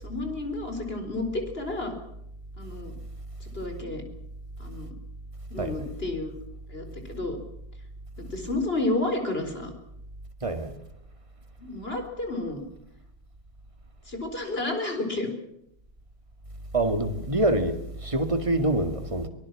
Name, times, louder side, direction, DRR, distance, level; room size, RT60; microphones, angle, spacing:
voice 1, 0.0-1.9 2.6-2.9 3.4-4.0 4.6-4.9 5.5-6.3 6.7-7.4 8.2-9.7 11.6-12.6 14.1-15.3, left 2 dB, 25° left, 4.1 m, -31 dB
voice 2, 10.4-10.7 16.7-19.3, right 1 dB, 15° right, 1.9 m, -26 dB
23.0 x 19.5 x 7.3 m
omnidirectional pair, 2.4 m